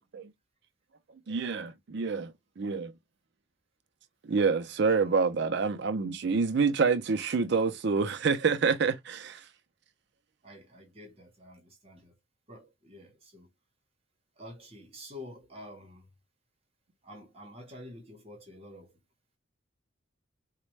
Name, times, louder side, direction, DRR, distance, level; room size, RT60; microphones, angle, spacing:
voice 1, 1.3-2.9 4.2-9.5, right 5 dB, 55° right, 0.4 m, -27 dB
voice 2, 10.4-12.1 12.5-13.5 14.4-16.1 17.0-19.0, left 1 dB, 30° right, 0.9 m, -48 dB
4.1 x 2.1 x 3.0 m
head